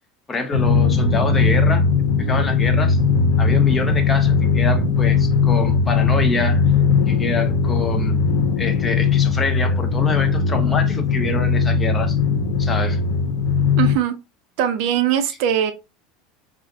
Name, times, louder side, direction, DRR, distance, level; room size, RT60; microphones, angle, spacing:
voice 1, 0.3-1.9 2.2-3.0 3.4-6.6 7.1-8.2 8.6-12.2 12.6-13.0, left 3 dB, 15° left, 0.5 m, -26 dB
Drum, 0.5-14.0, left 5 dB, 85° left, 0.8 m, -18 dB
voice 2, 13.8-14.1 14.6-15.7, right 10 dB, 60° right, 0.5 m, -20 dB
3.4 x 2.4 x 2.6 m
supercardioid pair, 155°, 0 cm